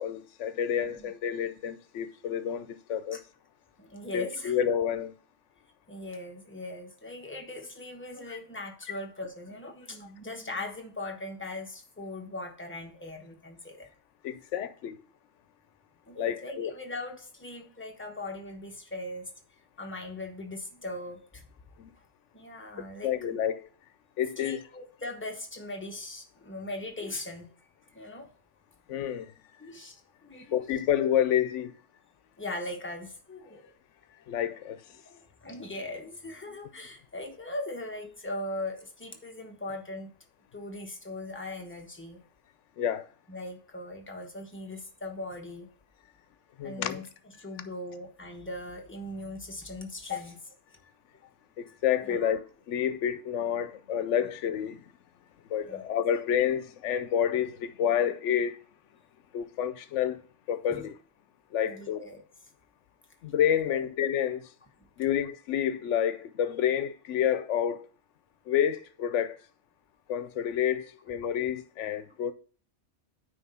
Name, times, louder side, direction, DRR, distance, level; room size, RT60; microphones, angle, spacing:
voice 1, 0.0-3.2 4.1-5.1 14.2-15.0 16.2-16.7 21.8-21.9 23.0-23.7 24.2-24.6 28.9-29.3 30.5-31.7 34.3-34.8 42.8-43.1 46.6-47.0 50.1-50.2 51.6-52.4 52.7-54.8 55.5-58.6 59.3-60.2 60.5-60.9 61.5-62.0 63.2-64.5 65.0-67.9 68.5-69.4 70.1-72.3, left 9 dB, 80° left, 0.9 m, -29 dB
voice 2, 0.7-1.1 3.1-3.2 3.8-4.6 5.9-13.9 16.1-19.3 19.8-21.5 22.3-23.4 24.4-27.5 27.9-28.3 29.6-30.6 32.4-33.7 35.0-40.1 40.5-42.2 43.3-45.7 46.6-47.0 47.4-50.3 52.0-52.4 55.6-55.8 60.7-60.9 61.6-62.2 63.7-63.8, left 2 dB, 10° left, 1.1 m, -40 dB
9.4 x 3.3 x 5.5 m
omnidirectional pair, 1.2 m